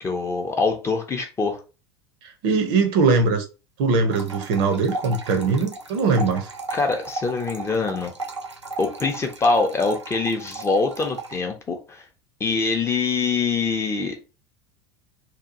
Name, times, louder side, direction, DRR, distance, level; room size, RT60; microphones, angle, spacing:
voice 1, 0.0-1.6 6.7-8.1 8.8-12.0 12.4-14.2, left 4 dB, 20° left, 0.6 m, -24 dB
voice 2, 2.4-3.4 3.8-6.5, right 4 dB, 50° right, 0.6 m, -21 dB
sound 1, 4.1-11.4, right 3 dB, 90° right, 0.4 m, -35 dB
2.8 x 2.3 x 2.5 m
figure-of-eight pair, 75°, 14 cm